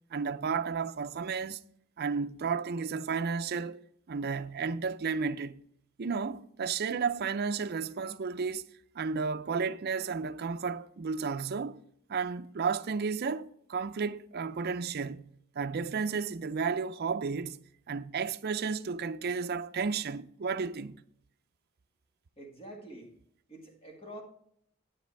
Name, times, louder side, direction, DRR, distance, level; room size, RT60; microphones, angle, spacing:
voice 1, 0.1-1.6 2.0-3.8 4.1-5.6 6.0-8.6 9.0-11.8 12.1-17.6 17.9-21.0, right 5 dB, 50° right, 0.5 m, -33 dB
voice 2, 22.4-23.1 23.5-24.2, right 1 dB, 30° left, 1.9 m, -46 dB
9.8 x 8.6 x 3.4 m
head